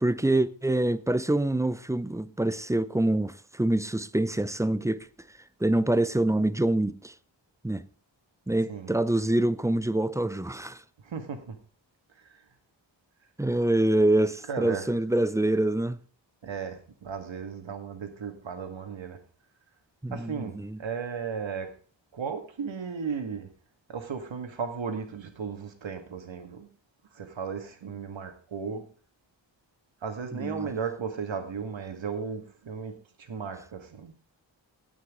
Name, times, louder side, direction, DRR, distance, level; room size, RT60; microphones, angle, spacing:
voice 1, 0.0-5.1 5.6-7.1 7.6-7.8 8.5-10.8 13.4-16.0 20.0-20.8 30.4-30.7, right 1 dB, 5° right, 0.5 m, -25 dB
voice 2, 11.0-11.6 12.2-12.4 14.5-14.8 16.4-19.2 20.1-21.7 22.1-23.5 23.9-26.7 27.1-28.8 30.0-34.1, right 6 dB, 75° right, 2.0 m, -35 dB
17.0 x 6.3 x 3.7 m
wide cardioid pair, 95°, 45 cm